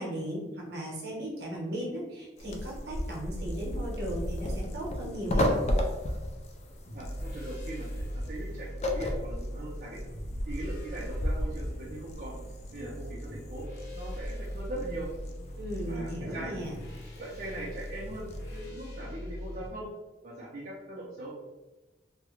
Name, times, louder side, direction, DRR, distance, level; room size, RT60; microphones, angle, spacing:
voice 1, 0.0-5.6 15.6-16.7, equal, 65° right, -3 dB, 0.8 m, -36 dB
sound 1, 2.4-18.7, left 1 dB, 40° left, 0.3 m, -35 dB
sound 2, 6.9-19.7, equal, 75° left, 0.9 m, -41 dB
voice 2, 6.9-8.7 8.9-10.0 10.5-12.3 12.7-13.7 13.9-15.1 15.8-16.5 17.2-19.9 20.2-21.3, right 1 dB, 50° right, -7 dB, 0.5 m, -40 dB
2.3 x 2.1 x 3.0 m, 1.1 s
head